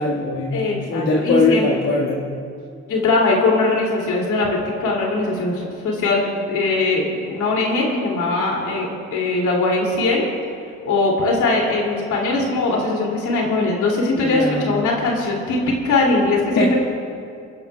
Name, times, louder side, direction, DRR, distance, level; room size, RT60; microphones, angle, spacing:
voice 1, 0.0-0.6 0.8-2.2 14.2-14.8 16.6-16.7, left 3 dB, 60° left, -5 dB, 1.7 m, -20 dB
voice 2, 0.5-1.7 2.9-10.2 10.8-16.8, left 2 dB, 80° left, -2 dB, 2.7 m, -20 dB
26.0 x 10.5 x 2.3 m, 2.4 s
cardioid pair, 90°, 30 cm